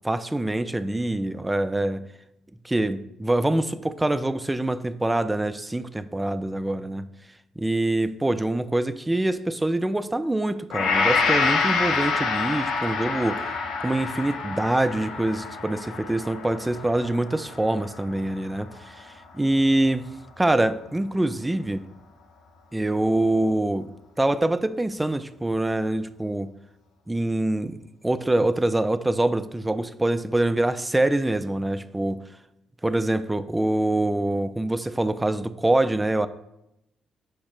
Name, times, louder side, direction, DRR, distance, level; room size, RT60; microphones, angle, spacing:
voice 1, 0.0-2.0 2.6-7.1 7.6-13.5 13.8-20.0 20.4-21.8 22.7-23.9 24.2-26.5 27.1-27.8 28.0-32.2 32.8-36.3, right 1 dB, 10° right, 13 dB, 0.4 m, -25 dB
Gong, 10.7-19.0 19.5-19.6, left 4 dB, 85° left, 0.8 m, -27 dB
6.5 x 2.9 x 5.7 m, 0.86 s
cardioid pair, 90°, 0 cm